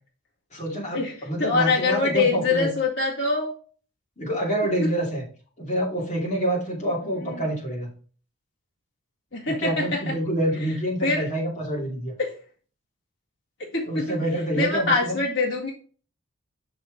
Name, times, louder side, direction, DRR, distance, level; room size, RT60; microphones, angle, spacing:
voice 1, 0.5-2.7 4.2-5.3 5.6-7.9 9.5-12.1 13.9-15.2, right 1 dB, 30° left, -3 dB, 2.6 m, -27 dB
voice 2, 1.4-3.5 4.8-4.9 7.2-7.4 9.3-10.1 11.0-11.3 12.2-12.3 13.6-14.2 14.6-15.7, left 3 dB, 60° left, -3 dB, 2.0 m, -24 dB
6.3 x 5.9 x 3.8 m, 0.40 s
head